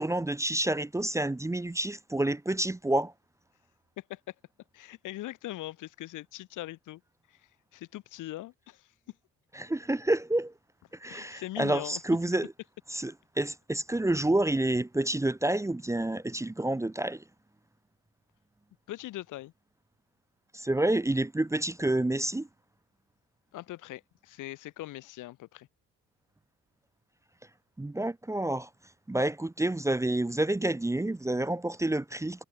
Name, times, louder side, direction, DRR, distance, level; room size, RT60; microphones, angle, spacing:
voice 1, 0.0-3.1 9.5-10.5 11.0-12.5 12.9-17.2 20.5-22.5 27.8-28.7 29.1-32.4, right 1 dB, 10° right, 0.8 m, -29 dB
voice 2, 4.0-4.3 4.7-7.0 7.3-7.4 7.7-8.9 11.1-12.0 18.9-19.5 23.5-25.7, left 16 dB, 90° left, 2.7 m, -41 dB
cardioid pair, 90°, 30 cm